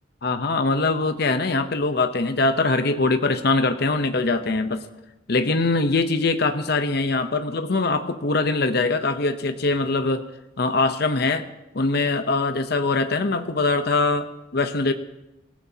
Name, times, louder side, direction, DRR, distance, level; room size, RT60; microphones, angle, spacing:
voice 1, 0.2-4.8 5.3-10.2 10.6-11.5 11.7-14.9, left 3 dB, 55° left, 8 dB, 0.8 m, -22 dB
27.0 x 15.0 x 2.8 m, 0.94 s
head